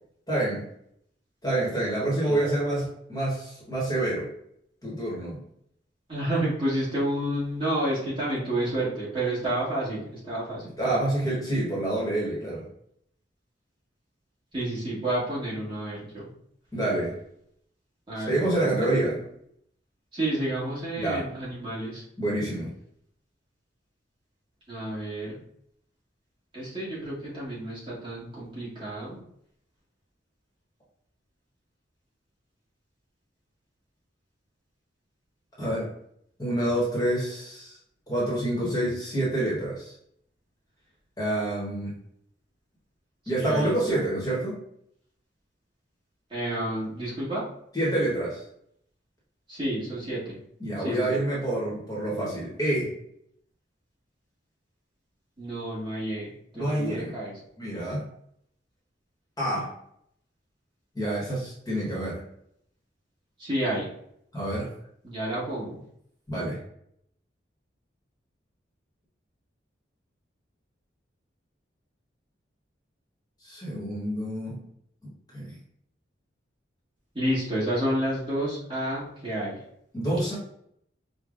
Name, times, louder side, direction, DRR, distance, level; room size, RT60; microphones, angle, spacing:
voice 1, 0.3-0.6 1.4-4.3 4.8-5.4 10.8-12.7 16.7-17.2 18.3-19.2 21.0-21.3 22.2-22.7 35.6-35.9 36.4-37.7 38.1-39.9 41.2-42.0 43.3-44.6 47.7-48.4 50.6-52.9 56.5-57.1 57.6-58.0 59.4-59.7 60.9-62.2 64.3-64.7 66.3-66.6 73.4-74.6 75.3-75.6 79.9-80.4, right 1 dB, 20° left, -6 dB, 1.1 m, -27 dB
voice 2, 6.1-10.7 14.5-16.3 18.1-19.0 20.1-22.0 24.7-25.4 26.5-29.2 43.3-44.0 46.3-47.5 49.5-50.4 50.8-51.2 55.4-57.3 63.4-63.9 65.0-65.8 77.1-79.6, right 1 dB, 25° right, -8 dB, 1.4 m, -30 dB
5.0 x 2.2 x 2.5 m, 0.71 s
head